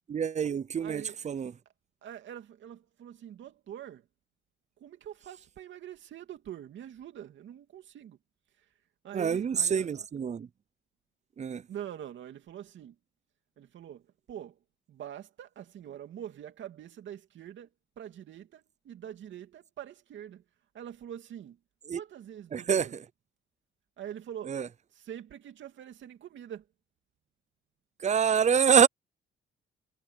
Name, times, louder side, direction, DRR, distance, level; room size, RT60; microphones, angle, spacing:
voice 1, 0.1-1.5 9.1-10.5 11.4-11.6 21.9-22.0 22.5-23.0 24.5-24.7 28.0-28.9, right 7 dB, 35° right, 0.6 m, -26 dB
voice 2, 0.8-1.2 2.0-4.0 4.8-8.2 9.0-10.0 11.7-12.9 13.6-14.0 14.3-14.6 14.9-17.7 18.0-20.4 20.7-21.6 21.9-23.0 24.0-24.6 24.9-26.6, right 10 dB, 70° right, 2.6 m, -44 dB
cardioid pair, 90°, 20 cm